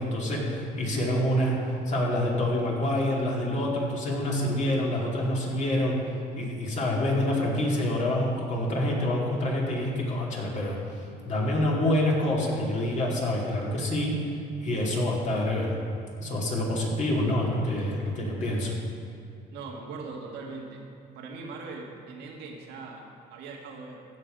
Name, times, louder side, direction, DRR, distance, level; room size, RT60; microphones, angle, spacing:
voice 1, 0.0-1.6 1.9-5.9 6.3-10.8 11.2-14.1 14.6-15.7 16.2-18.7, left 1 dB, 45° left, -3 dB, 2.6 m, -27 dB
voice 2, 19.5-20.8 21.1-24.0, right 4 dB, 85° right, 1 dB, 1.6 m, -40 dB
15.5 x 6.0 x 5.2 m, 2.5 s
cardioid pair, 110°, 17 cm